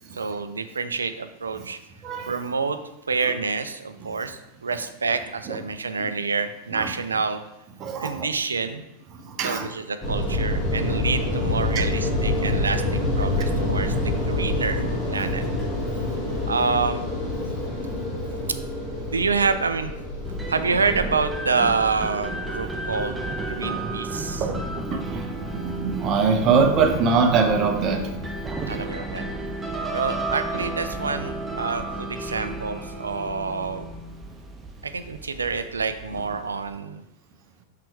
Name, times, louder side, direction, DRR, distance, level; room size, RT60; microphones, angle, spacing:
voice 1, 0.1-1.8 2.3-2.8 3.1-7.4 8.0-8.8 9.4-14.8 15.1-15.4 16.5-17.1 19.1-19.9 20.5-24.4 28.7-29.2 29.9-33.9 34.8-37.0, right 4 dB, 75° right, 10 dB, 0.5 m, -27 dB
voice 2, 7.8-8.3 9.1-9.7 12.4-12.5 13.4-13.5 16.3-16.4 24.4-28.3, right 5 dB, 35° right, 5 dB, 0.9 m, -23 dB
sound 1, 10.0-21.3, left 1 dB, 15° left, 1.9 m, -26 dB
sound 2, 20.2-36.8, right 2 dB, 10° right, 0.7 m, -33 dB
6.0 x 5.9 x 3.3 m, 0.89 s
figure-of-eight pair, 90°, 0 cm